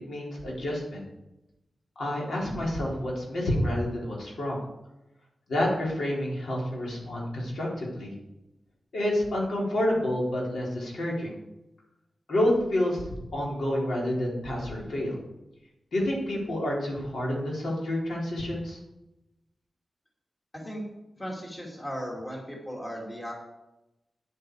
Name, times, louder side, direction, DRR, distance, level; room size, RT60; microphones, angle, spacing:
voice 1, 0.0-1.0 2.0-4.6 5.5-8.1 8.9-11.4 12.3-13.0 13.3-15.2 15.9-18.8, left 1 dB, 80° left, -4 dB, 3.9 m, -29 dB
voice 2, 20.5-20.9 21.2-23.3, equal, 20° left, -2 dB, 2.5 m, -36 dB
9.9 x 8.8 x 4.7 m, 0.93 s
wide cardioid pair, 175°, 0 cm